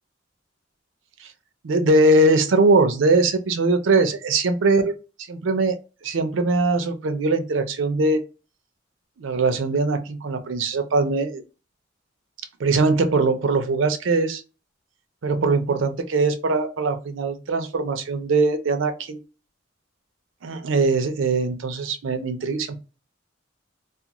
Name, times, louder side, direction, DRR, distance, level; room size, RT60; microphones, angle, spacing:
voice 1, 1.6-4.9 5.3-5.8 6.0-8.2 9.2-11.4 12.6-14.4 15.2-19.2 20.4-22.8, right 3 dB, 85° right, 0.5 m, -21 dB
2.4 x 2.2 x 2.9 m
head